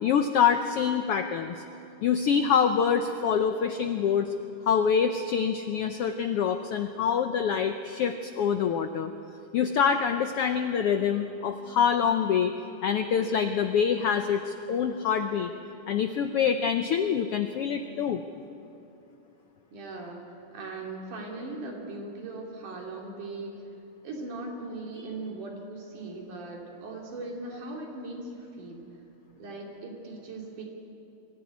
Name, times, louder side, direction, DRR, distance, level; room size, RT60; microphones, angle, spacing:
voice 1, 0.0-1.5 2.0-4.3 4.7-9.1 9.5-12.5 12.8-15.5 15.9-18.2, left 7 dB, 80° left, 7 dB, 1.3 m, -25 dB
voice 2, 19.7-23.5 24.0-28.9 29.4-30.6, right 2 dB, 80° right, -1 dB, 4.6 m, -39 dB
23.0 x 15.0 x 9.6 m, 2.9 s
omnidirectional pair, 3.6 m